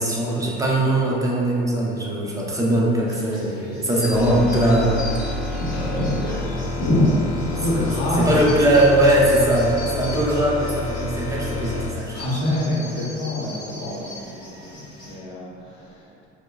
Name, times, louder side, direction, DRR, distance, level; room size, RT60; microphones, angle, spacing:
voice 1, 0.0-5.1 5.7-6.0 6.5-6.7 7.7-7.9 8.2-12.4, right 1 dB, 10° right, -4 dB, 0.6 m, -20 dB
sound 1, 3.1-15.2, left 2 dB, 15° left, 1.5 m, -41 dB
sound 2, 4.1-11.9, left 3 dB, 85° left, 0.5 m, -29 dB
voice 2, 5.3-7.1 7.4-8.4 8.8-8.9 12.1-16.3, left 1 dB, 55° left, -5 dB, 0.8 m, -26 dB
4.2 x 2.1 x 2.4 m, 2.6 s
hypercardioid pair, 65°, 33 cm